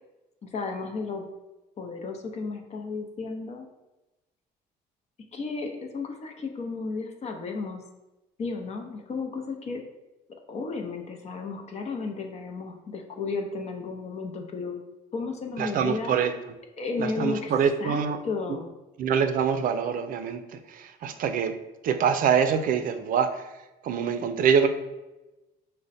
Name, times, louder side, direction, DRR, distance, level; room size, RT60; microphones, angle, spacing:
voice 1, 0.4-1.3 1.8-3.7 5.3-7.8 8.4-9.8 10.5-14.8 15.1-16.2 16.8-17.5 17.8-18.7, left 4 dB, 40° left, 3 dB, 0.6 m, -33 dB
voice 2, 15.6-16.3 17.0-18.2 19.0-21.5 21.8-23.5 23.8-24.7, right 7 dB, 55° right, 8 dB, 0.5 m, -25 dB
5.0 x 2.1 x 4.1 m, 1.0 s
cardioid pair, 110°, 17 cm